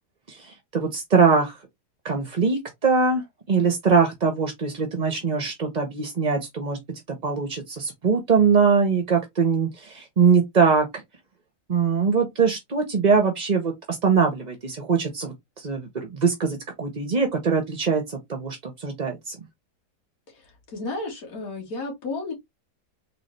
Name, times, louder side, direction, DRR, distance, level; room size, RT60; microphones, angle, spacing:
voice 1, 0.3-1.6 2.0-3.2 3.5-6.8 7.2-11.0 11.7-19.4, right 5 dB, 40° right, 0.6 m, -22 dB
voice 2, 20.7-22.3, left 3 dB, 60° left, 2.0 m, -32 dB
4.1 x 2.9 x 3.2 m
omnidirectional pair, 1.8 m